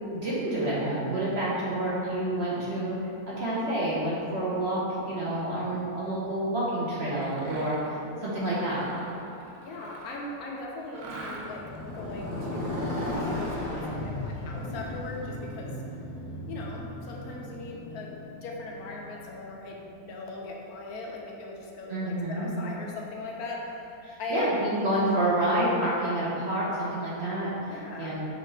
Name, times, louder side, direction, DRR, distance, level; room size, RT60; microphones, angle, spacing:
voice 1, 0.1-3.0 3.4-8.9 21.9-22.5 24.0-28.2, right 1 dB, 55° right, -8 dB, 0.8 m, -28 dB
Mechanisms, 7.2-7.9 8.4-10.3 10.9-11.8, right 2 dB, 75° right, 1.1 m, -43 dB
voice 2, 9.6-15.7 16.5-24.5 27.7-28.1, left 2 dB, 75° left, -2 dB, 1.0 m, -39 dB
Motorcycle, 11.3-19.4, left 1 dB, 40° left, 1.5 m, -35 dB
6.2 x 2.4 x 3.1 m, 2.8 s
omnidirectional pair, 1.7 m